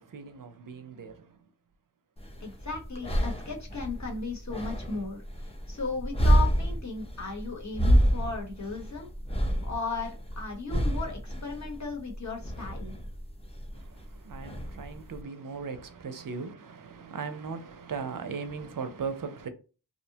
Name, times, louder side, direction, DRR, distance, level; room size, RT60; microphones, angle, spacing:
voice 1, 0.0-1.4 13.7-19.5, right 5 dB, 50° right, 0.5 m, -38 dB
sound 1, 2.2-15.2, equal, 15° left, 0.5 m, -29 dB
voice 2, 2.4-5.2 5.7-9.1 9.4-12.9, left 4 dB, 40° left, 1.0 m, -36 dB
2.7 x 2.1 x 2.7 m
wide cardioid pair, 55°, 43 cm